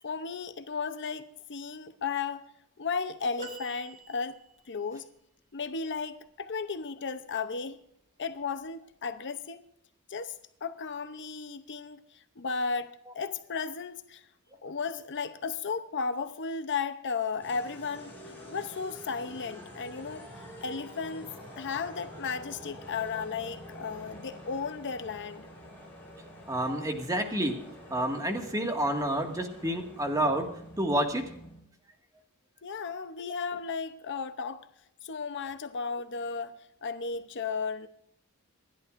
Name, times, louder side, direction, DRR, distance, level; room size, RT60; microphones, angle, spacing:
voice 1, 0.0-2.4 2.8-4.4 4.7-5.1 5.5-7.8 8.2-9.6 10.1-14.3 14.6-20.3 20.6-25.5 32.6-34.7 35.0-37.9, left 5 dB, 55° left, 0.7 m, -35 dB
sound 1, 3.4-4.8 7.2-7.4 8.7-8.8, right 2 dB, 35° right, 1.5 m, -45 dB
sound 2, 17.4-31.6, equal, 10° left, 7.4 m, -47 dB
voice 2, 26.5-27.6 27.9-30.5 30.8-31.2 33.2-33.3, right 1 dB, 15° right, 1.9 m, -29 dB
27.0 x 11.5 x 2.6 m
head